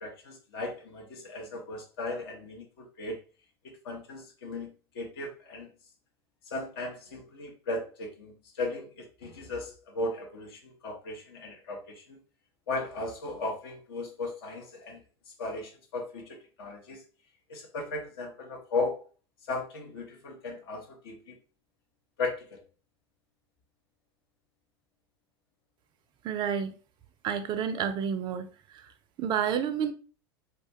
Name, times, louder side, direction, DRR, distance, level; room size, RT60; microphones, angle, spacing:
voice 1, 0.0-3.2 3.8-5.7 6.5-12.2 12.7-15.0 15.4-16.3 16.6-17.0 17.5-19.0 19.5-21.3 22.2-22.6, left 2 dB, 65° left, 0.6 m, -36 dB
voice 2, 26.2-26.7 27.2-28.5 29.2-29.9, right 8 dB, 35° right, 0.3 m, -29 dB
2.2 x 2.1 x 2.7 m
figure-of-eight pair, 80°, 14 cm